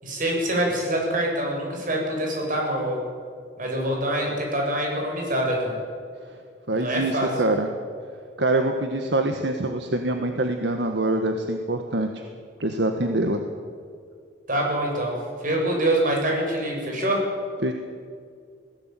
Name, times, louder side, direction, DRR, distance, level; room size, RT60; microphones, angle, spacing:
voice 1, 0.0-3.0 3.6-5.7 6.7-7.4 14.5-17.3, right 1 dB, 50° right, 0 dB, 7.5 m, -25 dB
voice 2, 6.7-7.7 8.4-12.2 12.6-13.4 17.6-17.7, right 2 dB, 70° right, 5 dB, 1.6 m, -24 dB
21.0 x 17.0 x 9.2 m, 2.2 s
head